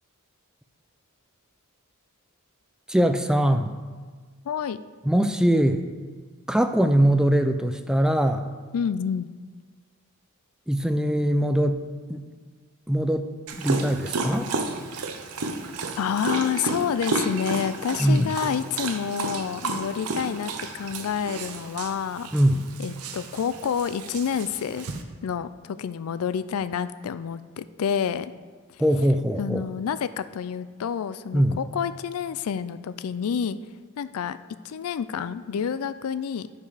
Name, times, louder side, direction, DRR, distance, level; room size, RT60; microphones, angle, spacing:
voice 1, 2.9-3.7 5.1-5.8 6.5-8.5 10.7-11.8 12.1-12.2 12.9-14.5 18.0-18.3 22.3-22.7 28.8-29.6 31.3-31.6, equal, 5° right, 8 dB, 0.3 m, -22 dB
voice 2, 4.5-4.8 8.7-9.3 16.0-22.3 22.8-24.9 25.2-28.3 29.4-33.6 34.0-34.4 34.6-36.5, left 7 dB, 70° left, 14 dB, 0.4 m, -28 dB
Dog, 13.5-25.0, right 3 dB, 85° right, 0.8 m, -32 dB
10.5 x 5.4 x 4.9 m, 1.5 s
head